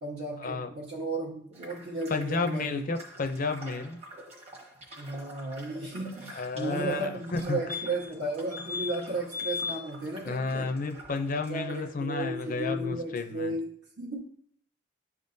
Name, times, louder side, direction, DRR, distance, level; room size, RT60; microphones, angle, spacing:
voice 1, 0.0-2.9 5.0-10.7 11.5-14.2, right 2 dB, 75° right, -7 dB, 1.4 m, -34 dB
sound 1, 1.5-11.9, right 1 dB, 35° right, 1.2 m, -49 dB
voice 2, 2.1-4.0 6.4-7.6 10.2-13.5, left 3 dB, 50° left, 7 dB, 0.5 m, -31 dB
sound 2, 7.4-7.5 7.7-8.2 8.5-8.9 9.3-9.8 12.1-12.2 12.4-12.5, left 5 dB, 15° right, 0.5 m, -35 dB
10.5 x 3.6 x 2.7 m, 0.64 s
head